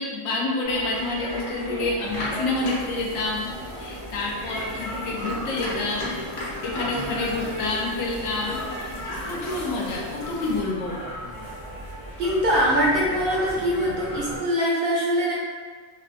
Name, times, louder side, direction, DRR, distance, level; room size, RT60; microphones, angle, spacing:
voice 1, 0.0-3.5 3.8-6.3 6.6-11.0, left 2 dB, 80° left, -1 dB, 1.0 m, -28 dB
sound 1, 0.6-14.4, equal, 25° left, 0.5 m, -36 dB
sound 2, 2.0-10.6, left 1 dB, 50° left, 0.8 m, -36 dB
voice 2, 12.2-15.3, equal, 65° right, -5 dB, 0.6 m, -22 dB
2.6 x 2.3 x 2.5 m, 1.5 s
omnidirectional pair, 1.4 m